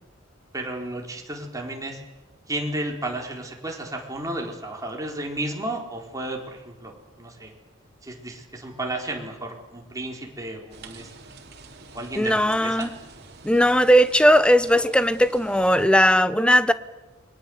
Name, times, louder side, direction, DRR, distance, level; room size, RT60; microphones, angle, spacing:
voice 1, 0.5-2.0 2.5-7.5 8.0-11.1 11.9-12.9, right 1 dB, 20° right, 4.4 m, -33 dB
sound 1, 10.7-15.9, right 3 dB, 55° right, 3.4 m, -46 dB
voice 2, 12.2-12.9 13.4-16.7, equal, 5° left, 0.9 m, -18 dB
29.0 x 23.0 x 8.0 m
head